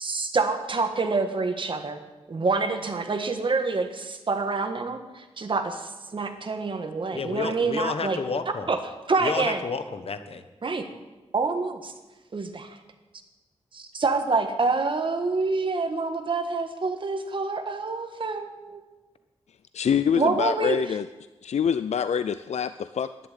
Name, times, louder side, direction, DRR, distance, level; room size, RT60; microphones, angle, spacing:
voice 1, 0.0-2.0 2.3-8.2 8.7-8.8 9.1-9.6 10.6-10.9 11.3-11.9 12.3-12.8 13.7-18.8 20.2-20.8, right 3 dB, 50° right, 6 dB, 1.6 m, -27 dB
voice 2, 7.1-8.7 9.2-10.4, left 4 dB, 60° left, 9 dB, 1.1 m, -30 dB
voice 3, 19.7-21.1 21.4-23.3, left 7 dB, 80° left, 13 dB, 0.4 m, -25 dB
11.0 x 11.0 x 9.1 m, 1.1 s
wide cardioid pair, 140°, 11 cm